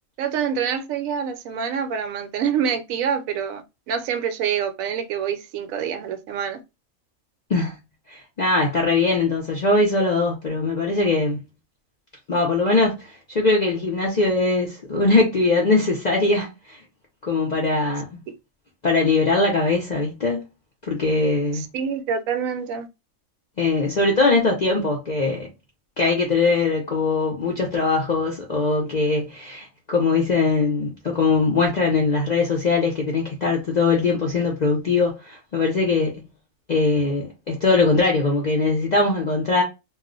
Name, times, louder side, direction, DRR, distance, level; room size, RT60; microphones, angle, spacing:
voice 1, 0.2-6.6 21.5-22.9, right 7 dB, 75° right, 1.0 m, -26 dB
voice 2, 8.1-11.4 12.3-16.8 17.2-18.2 18.8-20.4 20.9-21.7 23.6-25.5 26.0-36.3 36.7-39.6, left 3 dB, 55° left, 0.5 m, -21 dB
2.3 x 2.0 x 3.7 m
omnidirectional pair, 1.5 m